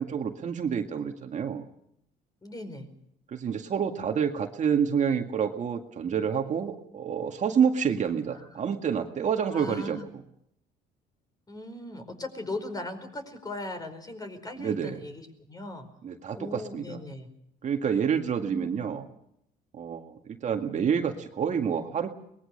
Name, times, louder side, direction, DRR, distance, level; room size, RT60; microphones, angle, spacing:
voice 1, 0.0-1.7 3.3-10.2 14.6-15.0 16.0-17.0 17.6-19.1 19.7-22.1, right 7 dB, 45° right, 4 dB, 2.0 m, -28 dB
voice 2, 2.4-2.9 8.4-8.5 9.5-10.1 11.5-15.9 16.3-17.3 18.5-19.0, left 2 dB, 20° left, 7 dB, 4.8 m, -39 dB
23.5 x 20.5 x 6.7 m, 0.76 s
cardioid pair, 110°, 17 cm